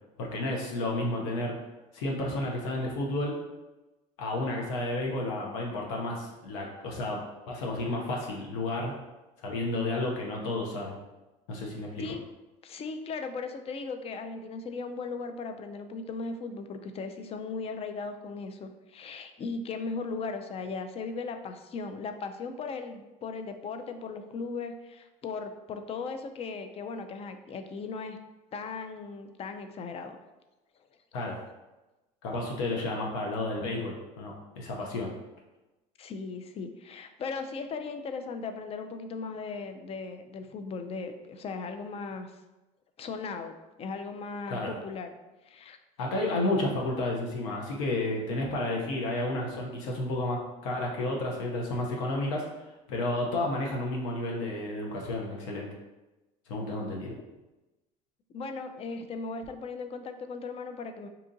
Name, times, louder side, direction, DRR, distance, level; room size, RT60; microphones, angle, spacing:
voice 1, 0.2-1.6 1.9-3.3 4.2-7.2 7.5-8.9 9.4-11.0 11.5-12.2 31.1-31.4 32.2-35.1 44.5-44.7 46.0-52.4 52.9-55.7 56.5-57.1, left 2 dB, 85° left, -1 dB, 0.7 m, -31 dB
voice 2, 12.6-28.2 28.5-30.2 36.0-42.3 43.0-45.1 45.4-45.8 58.3-61.1, left 4 dB, 35° left, 7 dB, 0.4 m, -37 dB
2.8 x 2.4 x 3.8 m, 1.1 s
supercardioid pair, 80°, 17 cm